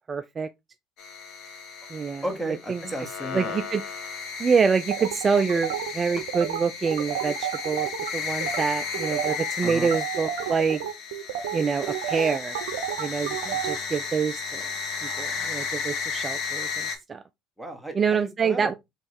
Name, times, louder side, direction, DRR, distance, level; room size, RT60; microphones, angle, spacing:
voice 1, 0.1-0.5 1.9-2.2 2.7-2.8 3.3-3.8 4.4-10.8 11.5-12.5 13.0-14.7 15.2-17.2 17.9-18.7, right 5 dB, 35° right, 0.4 m, -26 dB
sound 1, 1.0-17.0, left 5 dB, 65° left, 1.4 m, -34 dB
voice 2, 2.2-3.6 9.6-10.0 17.6-18.7, right 1 dB, ahead, 1.6 m, -34 dB
sound 2, 4.9-8.1 8.4-8.6 8.9-13.7, right 11 dB, 80° right, 0.6 m, -31 dB
3.5 x 3.2 x 4.4 m
hypercardioid pair, 75°, 0 cm